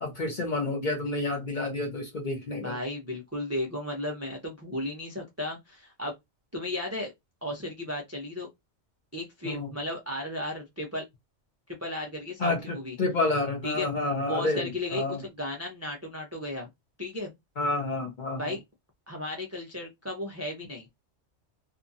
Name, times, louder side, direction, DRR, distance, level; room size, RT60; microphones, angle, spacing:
voice 1, 0.0-2.7 9.4-9.7 12.4-15.2 17.6-18.5, left 2 dB, 45° left, 0.7 m, -29 dB
voice 2, 2.5-6.1 6.5-7.1 7.4-8.5 9.1-11.0 11.8-13.0 13.6-13.9 14.3-16.7 17.0-17.3 18.4-18.6 19.1-20.9, left 1 dB, 20° right, 0.4 m, -34 dB
2.7 x 2.3 x 2.6 m
omnidirectional pair, 1.3 m